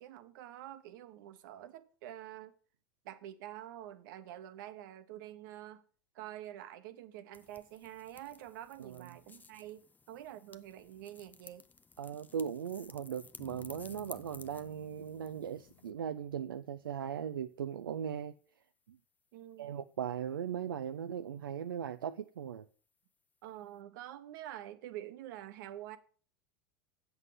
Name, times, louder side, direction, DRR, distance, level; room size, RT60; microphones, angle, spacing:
voice 1, 0.0-2.5 3.0-5.8 6.1-11.6 19.3-19.8 23.4-26.0, right 12 dB, 65° right, 1.1 m, -47 dB
sound 1, 7.3-15.9, left 4 dB, 15° left, 0.6 m, -56 dB
voice 2, 12.0-18.3 18.9-19.0 19.6-22.7, right 8 dB, 85° right, 0.4 m, -38 dB
Bass guitar, 13.4-17.4, left 14 dB, 65° left, 0.7 m, -58 dB
8.1 x 5.6 x 7.6 m
hypercardioid pair, 90°, 11 cm